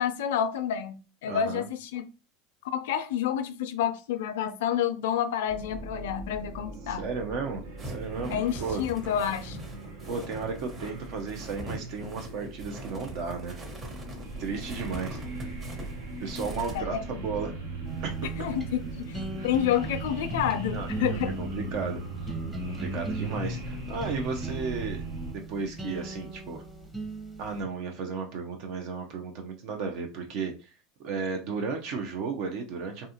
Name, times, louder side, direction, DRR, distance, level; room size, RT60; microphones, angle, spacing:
voice 1, 0.0-2.0 2.7-7.0 8.3-9.6 16.7-17.2 18.4-18.8 19.1-21.3, left 9 dB, 80° left, 0.3 m, -29 dB
voice 2, 1.3-1.6 6.9-8.8 10.1-13.6 14.4-15.2 16.2-17.5 18.0-18.3 20.7-22.3 22.7-25.0 25.3-26.6 27.4-30.7 31.0-33.1, right 4 dB, 60° right, 0.5 m, -34 dB
sound 1, 5.5-25.3, right 2 dB, 85° right, 0.8 m, -39 dB
sound 2, 7.8-16.8, right 1 dB, 25° right, 1.0 m, -43 dB
sound 3, 17.8-27.6, right 2 dB, 10° right, 0.7 m, -38 dB
2.5 x 2.3 x 2.7 m
supercardioid pair, 100°, 0 cm